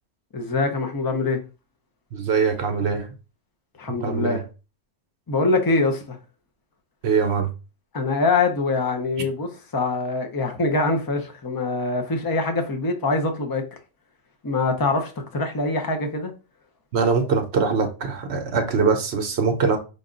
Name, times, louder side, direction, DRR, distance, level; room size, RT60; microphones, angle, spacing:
voice 1, 0.3-1.4 3.8-4.4 5.3-6.2 7.9-13.6 14.4-16.3, left 3 dB, 25° left, 0.6 m, -24 dB
voice 2, 2.1-3.1 4.0-4.4 7.0-7.5 16.9-19.8, right 5 dB, 65° right, 0.9 m, -22 dB
5.4 x 2.4 x 3.8 m
omnidirectional pair, 1.2 m